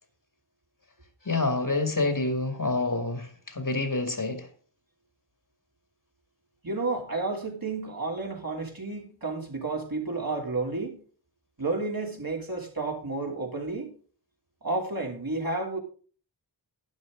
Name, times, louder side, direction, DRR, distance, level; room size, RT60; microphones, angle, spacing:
voice 1, 1.3-4.5, left 3 dB, 45° left, 2.1 m, -27 dB
voice 2, 6.6-11.0 11.6-13.9 14.6-15.8, right 3 dB, 50° right, 3.2 m, -31 dB
12.0 x 10.5 x 3.8 m
wide cardioid pair, 60°, 46 cm